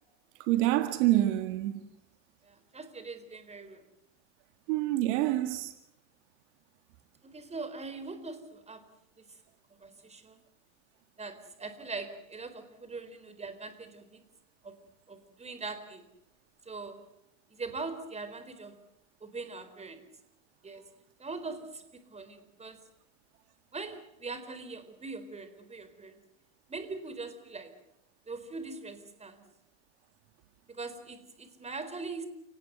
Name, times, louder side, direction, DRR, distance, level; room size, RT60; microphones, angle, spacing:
voice 1, 0.4-1.8 4.7-5.7, right 15 dB, 65° right, 2.1 m, -26 dB
voice 2, 2.4-3.8 7.2-8.9 9.2-9.4 9.7-10.4 11.2-14.2 14.6-14.8 15.1-16.1 16.6-17.1 17.5-18.8 19.2-20.0 20.6-20.9 21.2-22.8 23.7-26.2 26.7-27.8 28.3-29.5 30.7-32.3, right 3 dB, 15° right, 4.2 m, -42 dB
30.0 x 19.0 x 8.0 m
hypercardioid pair, 100°, 36 cm